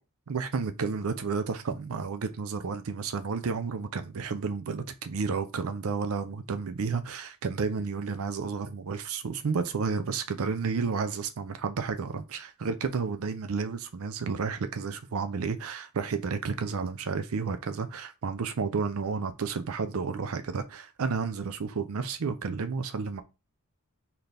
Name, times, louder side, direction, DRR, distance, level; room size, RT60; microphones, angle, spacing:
voice 1, 0.3-23.2, right 5 dB, 65° right, 0.5 m, -31 dB
4.0 x 2.8 x 3.3 m
head